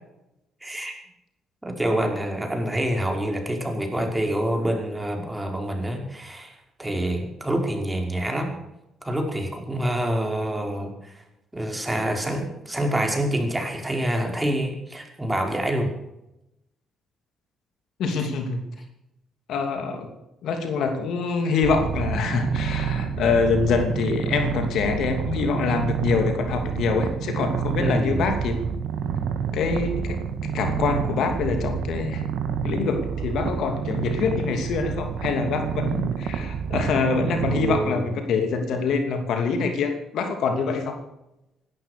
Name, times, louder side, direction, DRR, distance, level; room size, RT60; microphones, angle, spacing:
voice 1, 0.6-1.0 1.6-8.5 9.0-11.2 11.5-15.9 27.8-28.3 37.3-38.1, right 1 dB, 15° right, 2 dB, 5.3 m, -27 dB
voice 2, 18.0-18.6 19.5-20.1 20.4-28.5 29.5-30.2 30.5-32.2 32.6-41.0, left 4 dB, 70° left, 6 dB, 2.8 m, -25 dB
Purr, 21.6-37.8, right 7 dB, 70° right, 1.9 m, -28 dB
16.5 x 12.5 x 6.6 m, 0.88 s
hypercardioid pair, 55°, 0 cm